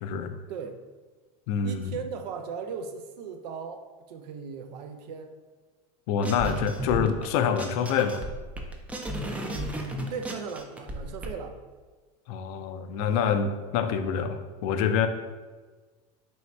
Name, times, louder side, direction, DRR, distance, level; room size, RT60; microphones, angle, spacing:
voice 1, 0.0-0.3 1.5-2.0 6.1-8.2 12.3-15.1, left 7 dB, 65° left, 8 dB, 0.4 m, -26 dB
voice 2, 1.6-5.3 9.4-11.6, right 5 dB, 85° right, 6 dB, 0.5 m, -38 dB
sound 1, 6.2-7.3 7.6-11.3, equal, 5° right, 0.3 m, -34 dB
3.1 x 2.7 x 4.4 m, 1.4 s
supercardioid pair, 135°, 20 cm